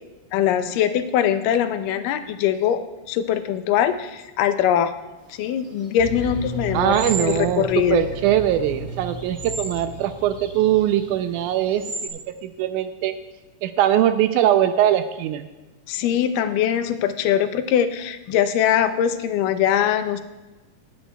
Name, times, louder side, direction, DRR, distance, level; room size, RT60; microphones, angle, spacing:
voice 1, 0.3-2.8 3.1-4.9 5.4-8.1 15.9-20.2, left 9 dB, 85° left, 10 dB, 2.3 m, -22 dB
sound 1, 5.3-12.1, right 3 dB, 25° right, 1.7 m, -37 dB
sound 2, 6.0-11.4 11.6-11.8, equal, 45° right, 2.0 m, -35 dB
voice 2, 6.7-11.8 12.1-13.2 13.6-15.5, right 11 dB, 80° right, 10 dB, 1.9 m, -21 dB
17.0 x 10.5 x 2.3 m, 1.2 s
omnidirectional pair, 3.8 m